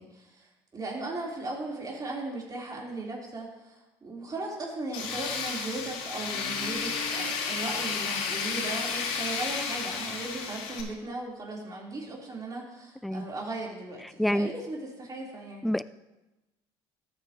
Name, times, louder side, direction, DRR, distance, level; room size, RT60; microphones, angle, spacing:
voice 1, 0.0-15.6, right 2 dB, 30° right, -3 dB, 3.8 m, -37 dB
Tools, 4.9-10.8, left 5 dB, 85° left, 2.8 m, -32 dB
voice 2, 14.2-14.5 15.6-15.8, equal, ahead, 15 dB, 0.3 m, -26 dB
13.5 x 9.3 x 3.1 m, 1.0 s
supercardioid pair, 80°, 12 cm